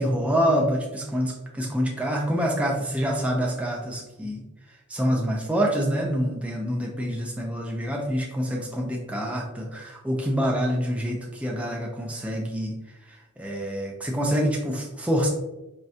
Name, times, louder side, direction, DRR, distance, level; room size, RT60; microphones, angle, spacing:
voice 1, 0.0-4.4 4.9-12.8 13.1-15.3, equal, 5° right, -1 dB, 0.5 m, -26 dB
4.6 x 3.2 x 2.7 m, 0.97 s
head